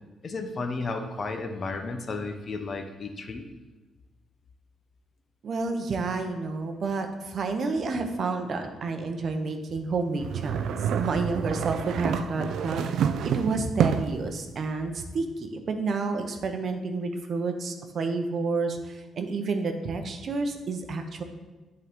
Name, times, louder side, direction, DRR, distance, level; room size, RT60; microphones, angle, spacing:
voice 1, 0.2-3.5, left 3 dB, 45° left, 6 dB, 0.6 m, -33 dB
voice 2, 5.4-21.2, right 3 dB, 55° right, 6 dB, 0.7 m, -30 dB
sound 1, 10.2-14.3, right 8 dB, 75° right, 0.3 m, -28 dB
8.3 x 3.8 x 3.5 m, 1.2 s
cardioid pair, 90°, 0 cm